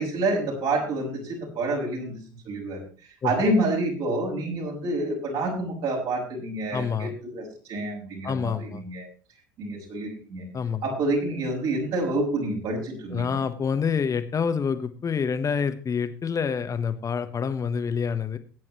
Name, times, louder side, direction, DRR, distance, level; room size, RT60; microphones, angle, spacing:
voice 1, 0.0-2.8 3.2-9.1 9.6-10.4 10.8-13.4, right 2 dB, 55° right, -3 dB, 6.3 m, -28 dB
voice 2, 6.7-7.1 8.2-8.8 10.5-10.8 13.1-18.4, left 6 dB, 30° left, 10 dB, 1.5 m, -27 dB
20.0 x 9.5 x 3.1 m, 0.38 s
figure-of-eight pair, 65°, 11 cm